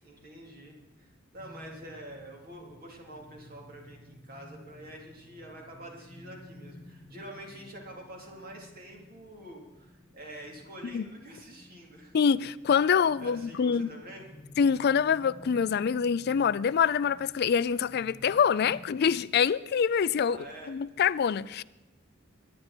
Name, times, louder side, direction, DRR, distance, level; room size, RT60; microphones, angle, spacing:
voice 1, 0.0-12.2 13.2-14.3 20.3-20.8, right 1 dB, 50° right, 3.6 m, -47 dB
sound 1, 1.4-19.4, left 1 dB, 20° left, 2.0 m, -53 dB
voice 2, 12.1-13.9 14.6-20.4 20.7-21.6, left 7 dB, 55° left, 0.4 m, -25 dB
22.5 x 10.5 x 4.5 m
head